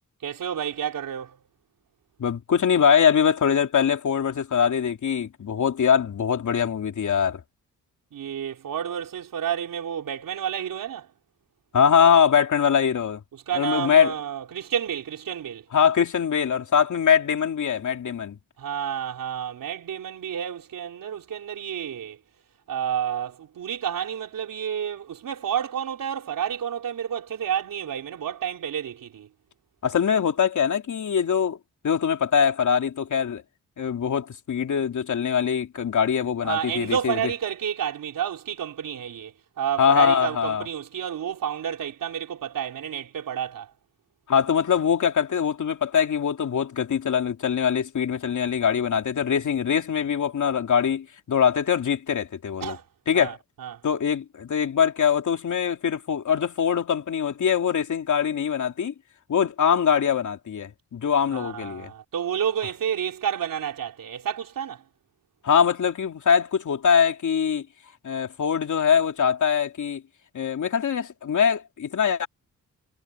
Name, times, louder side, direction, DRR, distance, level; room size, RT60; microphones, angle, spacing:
voice 1, 0.2-1.4 8.1-11.1 13.3-15.7 18.6-22.2 22.7-29.3 36.4-43.7 52.6-52.8 53.1-53.8 61.3-64.9, right 9 dB, 75° right, 3.7 m, -30 dB
voice 2, 2.2-7.4 11.7-13.2 13.5-14.1 15.7-18.4 29.8-31.6 31.8-33.4 33.8-37.2 39.8-40.6 44.3-52.8 53.1-53.4 53.8-58.9 59.3-61.9 65.4-67.7 68.0-70.0 70.3-72.3, left 7 dB, 60° left, 3.2 m, -22 dB
cardioid pair, 90°, 33 cm